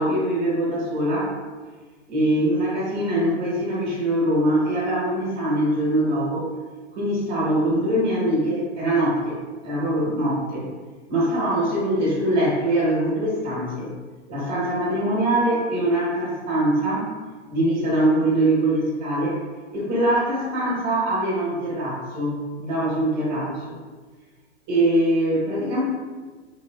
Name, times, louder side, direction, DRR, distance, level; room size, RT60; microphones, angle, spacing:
voice 1, 0.0-1.3 2.1-6.5 6.9-9.4 9.6-10.7 11.1-13.9 14.3-17.1 17.5-19.4 19.7-23.8 24.7-25.8, right 1 dB, 30° right, -7 dB, 1.1 m, -23 dB
3.6 x 2.7 x 2.2 m, 1.4 s
hypercardioid pair, 120°, 36 cm